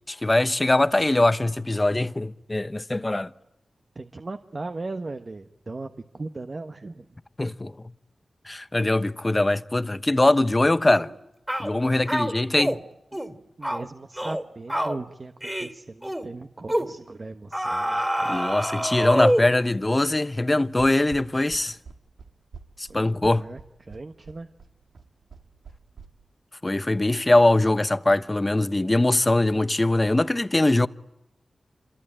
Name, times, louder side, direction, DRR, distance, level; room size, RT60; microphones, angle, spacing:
voice 1, 0.1-3.3 7.4-7.9 8.5-11.1 11.6-12.8 18.2-21.8 22.8-23.4 26.6-30.9, left 2 dB, 30° left, 1.0 m, -22 dB
voice 2, 3.9-7.1 11.8-12.0 13.6-18.3 18.7-18.9 22.9-24.5, right 3 dB, 50° right, 1.4 m, -38 dB
sound 1, 10.9-11.1 11.5-11.7 12.1-12.8 13.1-13.3 13.6-13.8 14.2-14.4 14.7-15.0 15.4-15.7 16.0-16.3 16.7-16.9 17.5-19.6, equal, 10° right, 2.8 m, -26 dB
sound 2, 20.8-26.1, right 5 dB, 80° right, 2.4 m, -45 dB
27.0 x 23.5 x 9.1 m
cardioid pair, 45°, 0 cm